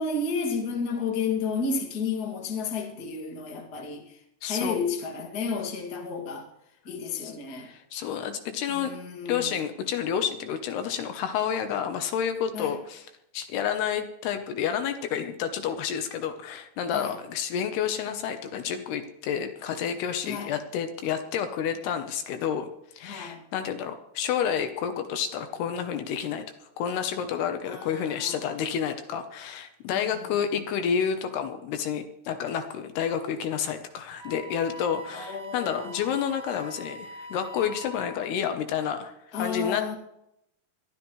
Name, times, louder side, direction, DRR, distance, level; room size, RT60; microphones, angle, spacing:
voice 1, 0.0-6.5 6.8-7.7 8.7-9.6 12.5-12.8 16.9-17.2 20.2-20.5 23.0-23.4 27.6-28.5 29.9-30.3 35.1-36.1 39.3-39.9, left 4 dB, 30° left, 1.8 m, -32 dB
voice 2, 4.4-4.8 7.2-8.9 9.3-13.0 13.3-22.7 22.9-26.4 26.8-40.0, left 8 dB, 75° left, 2.9 m, -30 dB
Wind instrument woodwind instrument, 34.2-38.3, equal, 45° right, 1.4 m, -43 dB
21.5 x 13.5 x 3.2 m
omnidirectional pair, 4.9 m